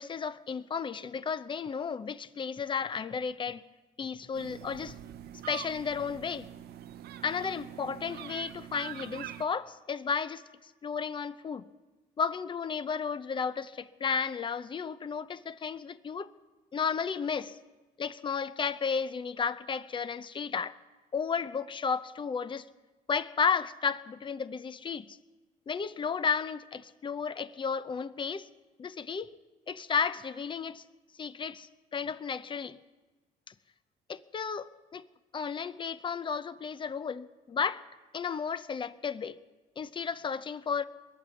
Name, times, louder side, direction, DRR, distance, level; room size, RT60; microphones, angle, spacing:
voice 1, 0.0-3.6 4.0-5.0 5.5-6.5 7.2-11.7 12.2-16.3 16.7-17.6 18.0-20.8 21.1-22.6 23.1-25.2 25.7-28.5 28.8-29.3 29.7-30.8 31.2-32.8 33.5-33.6 34.1-35.1 35.3-37.8 38.1-39.4 39.8-40.9, left 6 dB, 30° left, 0.6 m, -33 dB
sound 1, 4.3-9.4, right 11 dB, 70° right, 0.7 m, -44 dB
22.0 x 9.2 x 7.0 m
cardioid pair, 110°, 17 cm